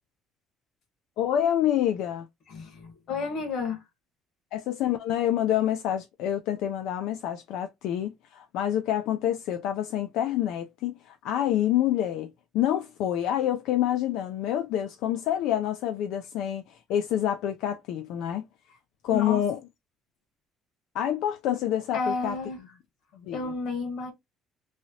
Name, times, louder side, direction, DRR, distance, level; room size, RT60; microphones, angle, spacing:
voice 1, 1.2-2.3 4.5-18.5 19.0-19.6 20.9-22.4 23.1-23.4, left 11 dB, 70° left, 0.3 m, -27 dB
voice 2, 2.5-3.8 18.7-18.8 19.1-19.4 21.9-22.6 23.3-24.1, left 4 dB, 50° left, 1.2 m, -31 dB
3.1 x 2.8 x 2.7 m
cardioid pair, 165°, 0 cm